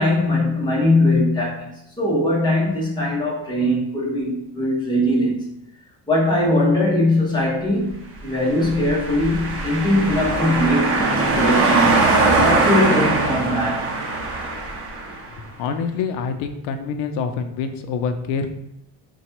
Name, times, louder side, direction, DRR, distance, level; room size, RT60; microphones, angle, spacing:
voice 1, 0.0-5.5 6.1-12.0 12.4-13.9, left 1 dB, 10° left, -5 dB, 0.9 m, -21 dB
sound 1, 8.5-15.3, right 3 dB, 30° right, 0.7 m, -21 dB
voice 2, 15.6-18.5, left 5 dB, 90° left, 7 dB, 0.6 m, -26 dB
3.9 x 2.3 x 4.4 m, 0.82 s
cardioid pair, 180°, 41 cm